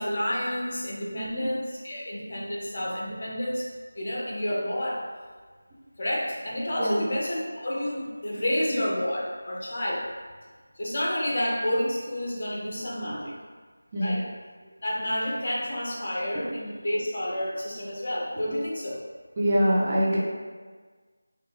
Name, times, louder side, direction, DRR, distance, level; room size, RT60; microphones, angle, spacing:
voice 1, 0.0-3.7 3.9-5.0 6.0-10.1 10.8-13.3 14.0-14.2 14.8-19.0, equal, 40° left, -4 dB, 0.6 m, -29 dB
voice 2, 19.4-20.2, equal, 25° right, -6 dB, 0.4 m, -25 dB
2.4 x 2.2 x 3.0 m, 1.5 s
figure-of-eight pair, 165°, 0 cm